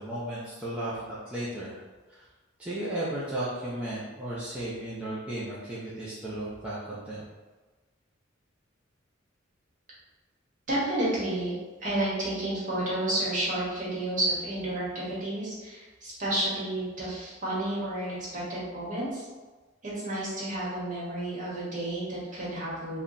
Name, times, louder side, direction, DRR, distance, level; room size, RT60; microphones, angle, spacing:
voice 1, 0.0-1.8 2.1-2.3 2.6-7.3, right 1 dB, 5° right, -10 dB, 0.5 m, -35 dB
voice 2, 10.7-11.5 11.8-19.3 19.8-23.0, right 1 dB, 40° right, -7 dB, 1.2 m, -31 dB
2.9 x 2.2 x 3.8 m, 1.2 s
head